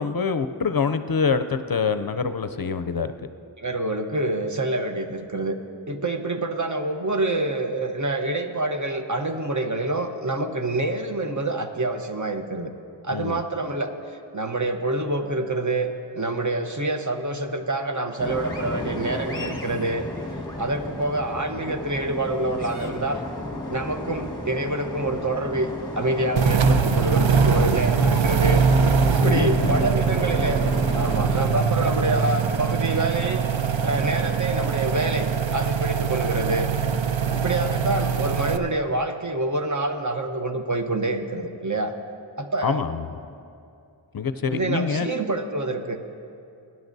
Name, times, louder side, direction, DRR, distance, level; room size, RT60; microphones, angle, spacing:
voice 1, 0.0-3.1 13.1-13.4 29.1-29.9 42.6-43.1 44.1-45.1, left 5 dB, 50° left, 10 dB, 0.5 m, -25 dB
voice 2, 3.6-5.5 5.9-12.7 13.0-13.9 14.3-20.0 20.6-23.2 23.7-28.6 29.1-30.6 30.9-33.4 33.8-35.3 35.5-36.7 37.3-41.9 42.4-42.8 44.5-46.0, right 2 dB, 40° right, 5 dB, 0.9 m, -26 dB
sound 1, 18.2-31.5, left 2 dB, 10° left, 1.5 m, -33 dB
sound 2, 26.4-38.6, right 5 dB, 80° right, 0.6 m, -22 dB
23.5 x 11.0 x 2.7 m, 2.5 s
wide cardioid pair, 45°, 45 cm